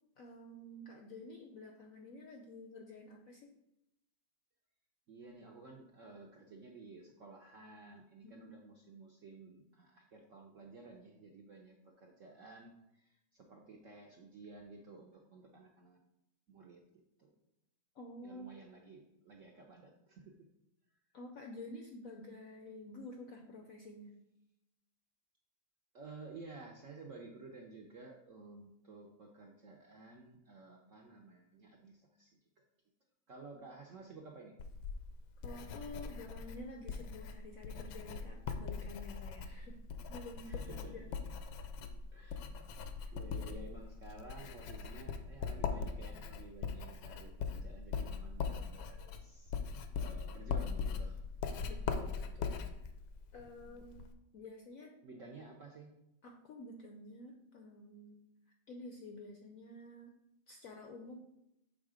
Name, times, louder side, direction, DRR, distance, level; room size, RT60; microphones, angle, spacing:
voice 1, 0.2-3.5 8.2-8.6 17.9-18.5 21.1-24.1 33.5-33.6 35.4-39.8 40.1-41.1 43.0-43.1 51.7-52.8 53.3-54.0 54.3-54.9 56.2-58.2 58.7-60.2 60.5-61.2, left 2 dB, 70° left, 3 dB, 0.8 m, -50 dB
voice 2, 5.1-16.0 16.5-16.8 17.2-17.3 18.2-20.4 25.9-32.3 32.6-32.7 33.3-34.5 40.4-41.1 42.1-42.4 42.8-49.5 49.9-51.2 53.6-53.8 55.0-55.9, right 3 dB, 70° right, 0 dB, 0.7 m, -53 dB
Writing, 34.6-54.1, left 5 dB, 90° left, 1.4 m, -41 dB
6.4 x 3.7 x 4.9 m, 0.85 s
omnidirectional pair, 2.1 m